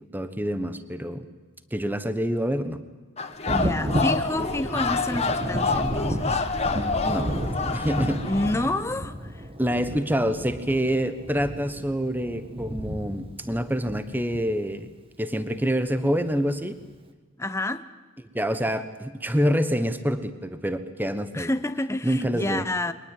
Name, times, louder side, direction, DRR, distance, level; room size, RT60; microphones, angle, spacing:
voice 1, 0.1-1.2 1.7-2.8 7.0-7.3 7.7-8.2 9.6-14.9 15.2-16.8 18.3-21.5 22.0-22.6, equal, 10° right, 11 dB, 1.1 m, -26 dB
sound 1, 3.2-8.7, left 4 dB, 30° left, 1.7 m, -28 dB
voice 2, 3.5-6.5 8.2-9.5 17.4-17.8 21.3-22.9, left 1 dB, 10° left, 11 dB, 0.7 m, -29 dB
Thunder, 3.5-14.9 16.2-16.3 16.8-16.9, equal, 25° right, 1.5 m, -32 dB
23.0 x 19.5 x 9.1 m, 1.3 s
head